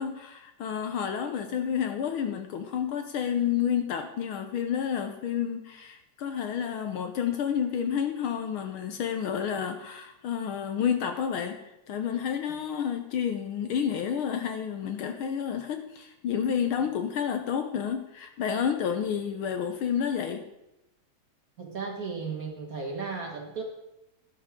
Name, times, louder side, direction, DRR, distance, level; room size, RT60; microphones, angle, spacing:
voice 1, 0.0-11.6 11.9-20.4, left 8 dB, 80° left, 6 dB, 1.1 m, -30 dB
voice 2, 21.6-23.6, right 4 dB, 40° right, 1 dB, 1.4 m, -35 dB
12.0 x 11.0 x 3.7 m, 0.91 s
omnidirectional pair, 3.3 m